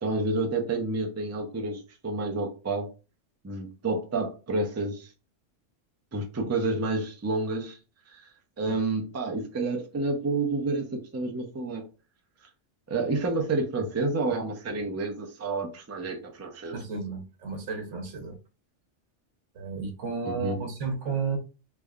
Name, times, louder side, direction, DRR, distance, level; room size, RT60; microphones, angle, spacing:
voice 1, 0.0-2.9 3.4-5.1 6.1-7.8 8.1-8.3 8.6-11.8 12.9-16.8 20.2-20.6, right 3 dB, 25° right, 0.4 m, -29 dB
voice 2, 16.7-18.4 19.5-21.4, right 4 dB, 80° right, 1.1 m, -32 dB
3.4 x 2.1 x 3.5 m
omnidirectional pair, 1.2 m